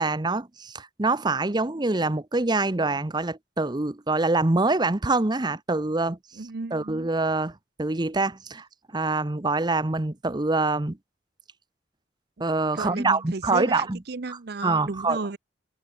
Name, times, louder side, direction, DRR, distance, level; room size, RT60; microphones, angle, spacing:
voice 1, 0.0-6.2 6.7-8.7 8.9-11.0 12.4-14.0 14.3-15.2, right 3 dB, 25° right, 0.9 m, -25 dB
voice 2, 6.4-7.1 12.7-15.4, right 3 dB, 60° right, 0.7 m, -33 dB
head